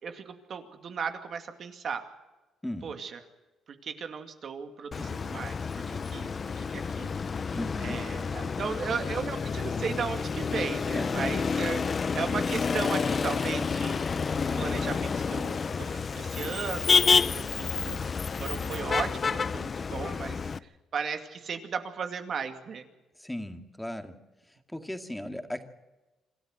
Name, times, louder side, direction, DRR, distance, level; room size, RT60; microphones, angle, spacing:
voice 1, 0.0-2.1 2.8-3.2 3.7-6.3 6.6-11.8 12.1-14.2 14.6-18.0 18.4-22.9, right 6 dB, 55° right, 6 dB, 2.4 m, -36 dB
Motor vehicle (road), 4.9-20.6, left 5 dB, 40° left, 0.7 m, -29 dB
voice 2, 7.5-8.0 10.9-11.5 23.2-24.1 24.7-25.6, left 1 dB, 5° left, 6 dB, 2.2 m, -37 dB
26.5 x 13.0 x 7.9 m, 1.1 s
cardioid pair, 90°, 0 cm